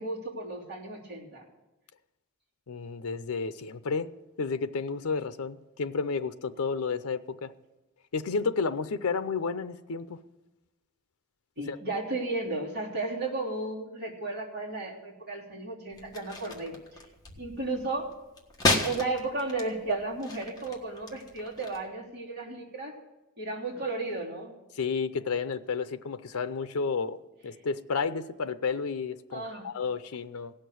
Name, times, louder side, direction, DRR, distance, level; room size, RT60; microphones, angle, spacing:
voice 1, 0.0-1.4 11.6-17.0 17.4-18.1 18.8-23.0 23.4-24.5 29.3-29.7, right 2 dB, 50° right, -4 dB, 3.4 m, -34 dB
voice 2, 2.7-4.1 4.4-7.5 8.1-10.2 11.7-11.8 24.8-27.2 27.4-30.5, left 5 dB, 90° left, 11 dB, 0.6 m, -31 dB
sound 1, 15.9-21.8, left 2 dB, 20° left, 1.5 m, -34 dB
17.0 x 6.6 x 9.3 m, 1.0 s
head